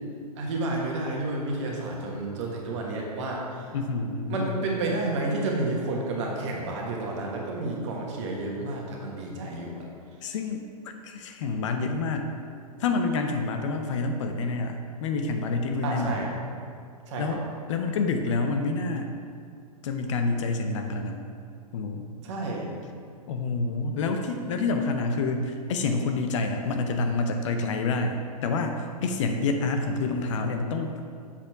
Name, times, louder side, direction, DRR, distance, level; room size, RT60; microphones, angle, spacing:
voice 1, 0.4-3.7 4.3-9.9 15.8-16.3 17.1-17.4 22.2-22.7, right 2 dB, 50° right, -1 dB, 1.4 m, -30 dB
voice 2, 3.7-4.6 10.2-10.6 11.0-12.3 12.8-16.3 17.2-17.4 17.7-19.1 19.8-21.3 21.7-22.1 23.3-31.0, left 3 dB, 50° left, 5 dB, 0.6 m, -28 dB
7.2 x 4.3 x 4.7 m, 2.3 s
figure-of-eight pair, 105°, 20 cm